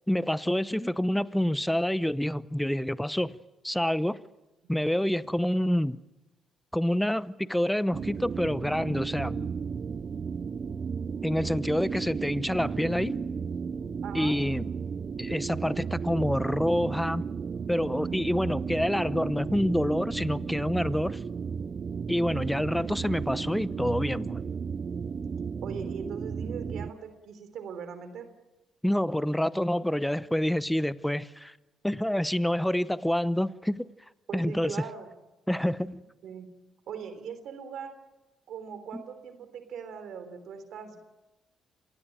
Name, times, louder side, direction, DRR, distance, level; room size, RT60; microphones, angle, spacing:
voice 1, 0.1-3.4 3.6-4.2 4.7-6.0 6.7-9.5 11.2-13.2 14.1-14.6 15.2-17.2 17.7-21.2 22.1-24.4 28.8-31.5 31.8-33.9 34.3-34.8 35.5-36.0 38.9-39.0, left 1 dB, 5° left, 0.8 m, -27 dB
sound 1, 7.9-26.9, right 6 dB, 45° right, 0.9 m, -34 dB
voice 2, 14.0-14.4 25.6-28.3 34.3-35.1 36.2-36.5 36.9-37.9 38.5-41.0, right 7 dB, 70° right, 3.5 m, -40 dB
26.5 x 19.5 x 9.1 m
cardioid pair, 90°, 0 cm